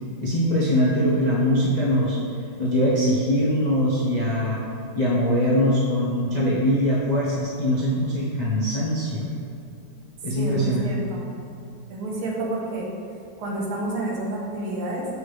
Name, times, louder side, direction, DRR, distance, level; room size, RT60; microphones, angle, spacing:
voice 1, 0.2-2.2 2.6-4.6 4.9-9.3 10.2-10.9, equal, 55° left, -7 dB, 0.4 m, -22 dB
voice 2, 10.4-11.2 11.9-12.9 13.4-15.1, right 2 dB, 80° right, -3 dB, 1.9 m, -29 dB
6.8 x 6.4 x 3.3 m, 2.6 s
omnidirectional pair, 2.3 m